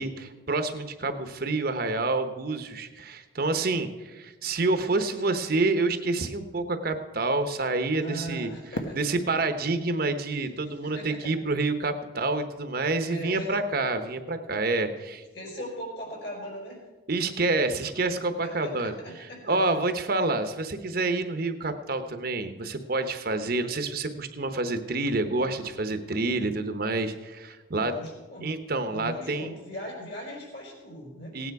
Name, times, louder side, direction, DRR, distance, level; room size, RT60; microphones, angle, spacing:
voice 1, 0.0-8.5 8.9-15.2 17.1-18.9 19.4-27.9 28.4-29.5 31.3-31.5, right 3 dB, 50° right, 8 dB, 0.9 m, -28 dB
voice 2, 8.0-9.0 10.6-11.4 13.1-13.6 15.3-16.8 18.4-19.6 27.7-28.5 28.9-31.5, equal, 55° left, -1 dB, 4.6 m, -39 dB
Fireworks, 8.7-11.8, left 1 dB, 85° left, 1.2 m, -41 dB
17.0 x 9.3 x 4.7 m, 1.2 s
head